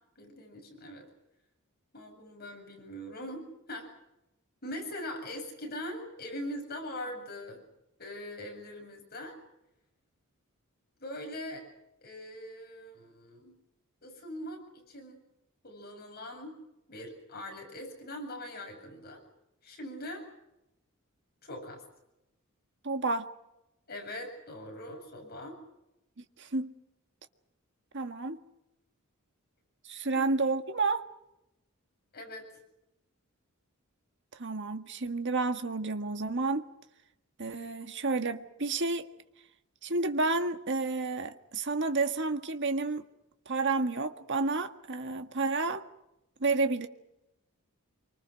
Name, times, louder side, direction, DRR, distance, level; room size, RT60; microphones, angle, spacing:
voice 1, 0.2-1.1 1.9-3.9 4.6-7.6 8.0-9.4 11.0-11.7 12.0-13.6 14.0-15.2 15.6-16.5 16.9-19.2 19.6-20.2 21.4-21.8 23.9-25.6 30.1-30.2 32.1-32.5, left 1 dB, 45° left, 7.6 m, -42 dB
voice 2, 22.8-23.2 26.4-26.7 27.9-28.4 29.9-31.1 34.4-36.7 37.4-39.1 39.8-43.0 43.5-45.8 46.4-46.9, right 3 dB, 55° right, 1.7 m, -30 dB
27.0 x 25.0 x 6.4 m
head